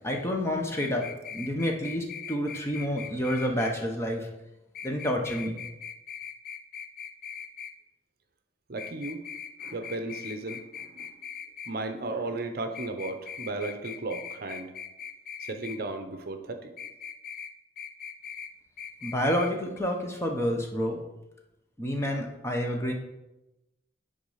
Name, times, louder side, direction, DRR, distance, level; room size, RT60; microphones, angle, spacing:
voice 1, 0.0-4.3 4.8-5.6 19.0-21.0 21.8-22.9, equal, 15° left, 1 dB, 1.0 m, -29 dB
sound 1, 0.8-3.7 4.7-7.7 8.8-11.7 12.7-15.8 16.8-17.5 17.8-18.5 18.8-19.5 19.8-19.9, left 7 dB, 50° left, 0.6 m, -40 dB
voice 2, 8.7-9.2 9.6-11.2 11.7-14.7 15.4-16.7, right 2 dB, 55° right, 7 dB, 0.7 m, -35 dB
9.5 x 3.9 x 5.7 m, 0.96 s
head